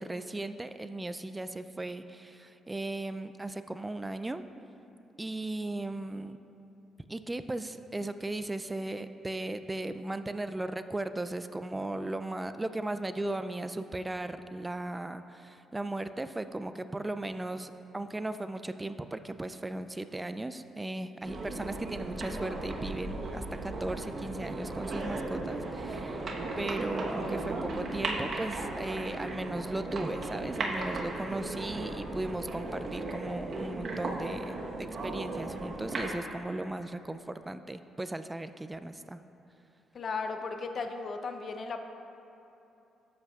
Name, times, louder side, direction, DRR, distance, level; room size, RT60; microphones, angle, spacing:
voice 1, 0.0-4.4 5.2-6.4 7.1-26.2 26.6-39.2, right 2 dB, 15° right, 10 dB, 0.3 m, -37 dB
sound 1, 21.2-36.1, right 2 dB, 55° right, 1.1 m, -36 dB
voice 2, 39.9-41.8, left 4 dB, 50° left, 6 dB, 0.6 m, -35 dB
12.5 x 8.1 x 2.4 m, 2.9 s
cardioid pair, 90°, 0 cm